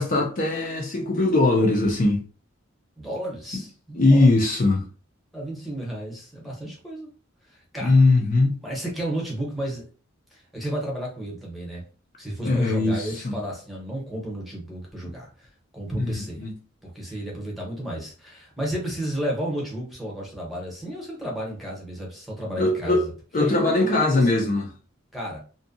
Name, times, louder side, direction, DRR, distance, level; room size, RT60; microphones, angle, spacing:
voice 1, 0.0-2.2 3.9-4.8 7.8-8.5 12.4-13.3 15.0-15.1 16.0-16.5 22.6-23.0 23.3-24.7, left 2 dB, 40° left, 0.5 m, -20 dB
voice 2, 3.0-4.3 5.3-7.1 7.5-8.0 8.6-9.9 10.3-11.8 12.2-15.5 15.7-16.5 16.8-24.5 25.1-25.4, right 1 dB, ahead, 0.8 m, -32 dB
2.6 x 2.2 x 2.5 m
head